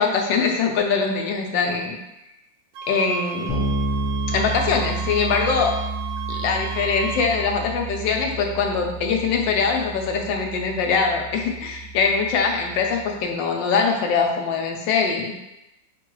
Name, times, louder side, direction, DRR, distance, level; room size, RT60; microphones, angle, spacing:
voice 1, 0.0-1.9 2.9-3.6 4.3-5.7 6.4-15.3, left 5 dB, 80° left, 2 dB, 1.3 m, -22 dB
sound 1, 2.7-7.3, right 6 dB, 85° right, 1.3 m, -34 dB
Bass guitar, 3.5-13.1, right 2 dB, 20° left, 0.5 m, -31 dB
5.4 x 2.2 x 3.0 m, 0.90 s
omnidirectional pair, 2.0 m